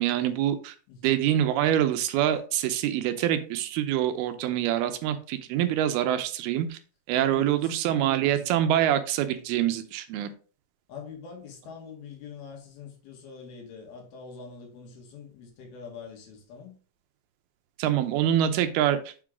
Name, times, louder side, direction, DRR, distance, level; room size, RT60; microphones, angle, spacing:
voice 1, 0.0-0.8 1.0-6.8 7.1-10.3 17.8-19.1, right 11 dB, 90° right, 2.7 m, -25 dB
voice 2, 0.9-1.2 5.7-5.8 7.1-7.7 8.2-8.5 10.9-16.8, left 6 dB, 80° left, 3.6 m, -44 dB
7.3 x 3.8 x 4.7 m
omnidirectional pair, 4.3 m